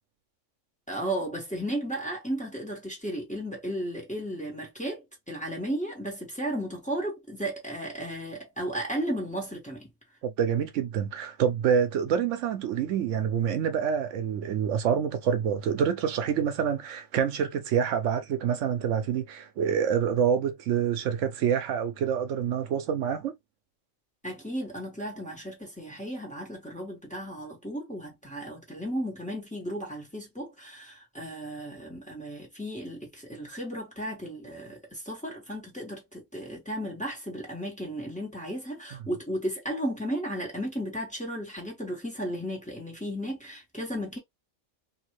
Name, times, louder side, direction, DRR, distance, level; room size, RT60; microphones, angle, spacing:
voice 1, 0.9-9.9 24.2-44.2, right 1 dB, 5° left, 1.3 m, -34 dB
voice 2, 10.2-23.3, right 8 dB, 75° right, 0.9 m, -27 dB
2.7 x 2.6 x 3.0 m
omnidirectional pair, 1.3 m